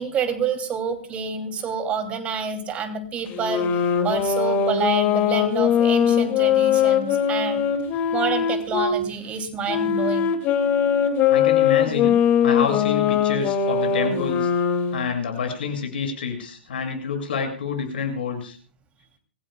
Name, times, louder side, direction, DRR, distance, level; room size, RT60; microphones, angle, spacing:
voice 1, 0.0-7.7 8.1-10.3, right 6 dB, 20° right, 7 dB, 2.8 m, -28 dB
sound 1, 3.3-9.0 9.7-15.0, left 8 dB, 30° left, 2.3 m, -21 dB
voice 2, 11.3-12.2 12.4-14.5 14.9-18.6, left 6 dB, 60° left, 5 dB, 7.0 m, -28 dB
26.0 x 16.0 x 2.3 m, 0.41 s
hypercardioid pair, 125°, 6 cm